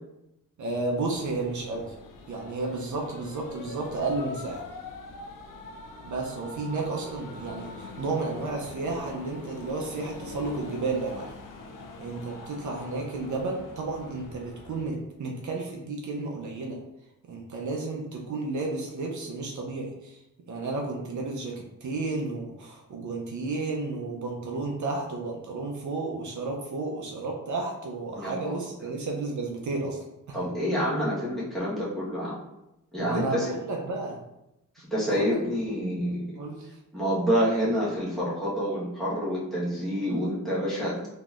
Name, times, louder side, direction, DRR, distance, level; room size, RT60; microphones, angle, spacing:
voice 1, 0.6-1.9 2.3-4.6 6.0-11.3 12.0-16.8 17.3-20.2 20.5-30.4 33.0-34.2 35.1-35.4 36.4-36.8, right 3 dB, 65° right, 0 dB, 0.6 m, -32 dB
sound 1, 1.0-14.9, left 3 dB, 75° left, 0.5 m, -43 dB
voice 2, 28.1-28.6 30.3-32.4 32.9-33.5 34.7-36.3 36.9-41.1, equal, ahead, -9 dB, 1.2 m, -28 dB
3.8 x 2.8 x 2.4 m, 0.89 s
wide cardioid pair, 145°, 33 cm